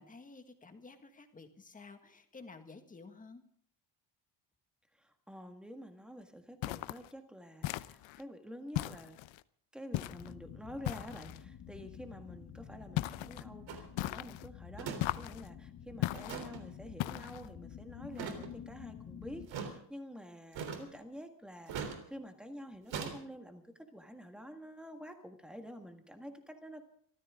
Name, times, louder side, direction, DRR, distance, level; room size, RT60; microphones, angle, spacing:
voice 1, 0.0-3.4, left 3 dB, 15° left, 7 dB, 1.7 m, -52 dB
voice 2, 5.0-9.2 9.7-23.6 23.9-26.8, equal, ahead, 5 dB, 1.7 m, -49 dB
sound 1, 6.6-7.1 7.6-8.2 8.7-9.4 9.9-10.3 10.8-11.4 13.0-13.4 14.0-14.5 15.0-15.5 16.0-16.5 17.0-17.5, left 16 dB, 85° left, 0.8 m, -37 dB
sound 2, 9.9-19.5, left 8 dB, 45° left, 1.7 m, -50 dB
sound 3, 13.7-13.9 14.8-15.0 15.3-15.4 16.1-16.6 18.1-18.5 19.5-19.7 20.5-21.0 21.7-22.0 22.9-23.2, right 6 dB, 75° right, 3.6 m, -40 dB
25.5 x 14.5 x 3.7 m, 0.63 s
cardioid pair, 180°, 45 cm